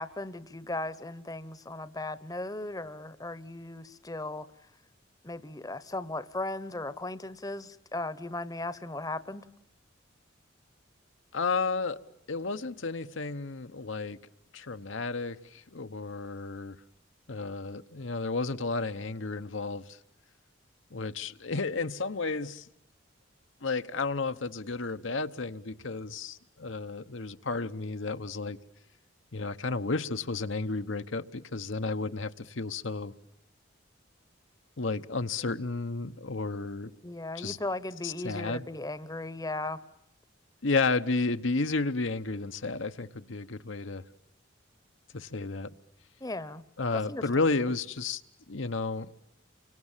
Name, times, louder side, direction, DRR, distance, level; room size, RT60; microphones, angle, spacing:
voice 1, 0.0-4.5 5.2-9.4 37.0-39.8 46.2-46.6 46.9-47.2, left 2 dB, 20° left, 1.0 m, -37 dB
voice 2, 11.3-12.0 12.3-14.2 14.5-16.8 17.3-20.0 20.9-22.7 23.6-28.6 29.3-33.1 34.8-36.9 37.3-37.6 38.0-38.7 40.6-44.0 45.1-45.7 46.8-48.2 48.5-49.1, left 3 dB, 75° left, 1.1 m, -32 dB
30.0 x 25.0 x 7.4 m
head